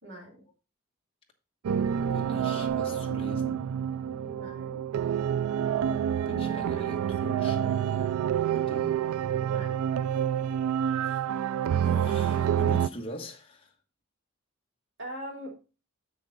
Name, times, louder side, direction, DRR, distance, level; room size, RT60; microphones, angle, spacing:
voice 1, 0.0-0.4 4.2-4.8 9.4-9.8 15.0-15.6, equal, 55° right, 3.0 m, -41 dB
sound 1, 1.6-12.9, right 9 dB, 80° right, 0.3 m, -28 dB
voice 2, 2.1-3.6 5.6-5.8 6.2-9.0 10.8-11.4 11.8-13.7, equal, 25° left, 1.2 m, -42 dB
Bass guitar, 2.7-8.9, left 2 dB, 30° right, 3.2 m, -53 dB
7.5 x 6.3 x 3.9 m
head